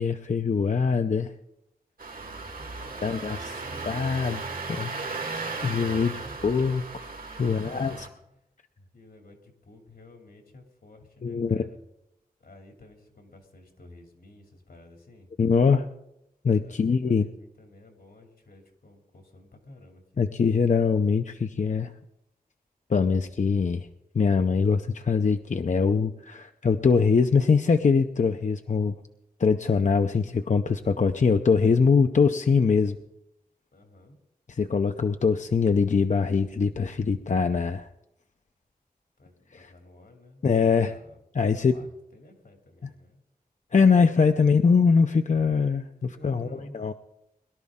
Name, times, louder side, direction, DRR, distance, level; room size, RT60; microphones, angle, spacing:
voice 1, 0.0-1.3 3.0-3.6 3.9-4.4 4.7-4.9 5.6-6.8 7.3-8.0 11.2-11.7 15.4-15.9 16.4-17.3 20.2-21.9 22.9-23.9 24.1-29.0 29.4-33.0 34.5-37.9 39.5-39.7 40.4-40.9 41.3-41.8 43.7-46.9, left 5 dB, 55° left, 7 dB, 0.6 m, -23 dB
Engine starting, 2.0-8.1, right 3 dB, 70° right, 1.8 m, -36 dB
voice 2, 2.2-3.9 6.0-6.7 7.4-8.3 8.8-11.8 12.4-15.3 16.6-20.0 33.7-34.2 39.2-41.2 41.5-43.2 46.0-46.7, left 1 dB, 80° left, 3 dB, 2.6 m, -51 dB
22.0 x 12.0 x 3.7 m, 0.82 s
wide cardioid pair, 95°, 15 cm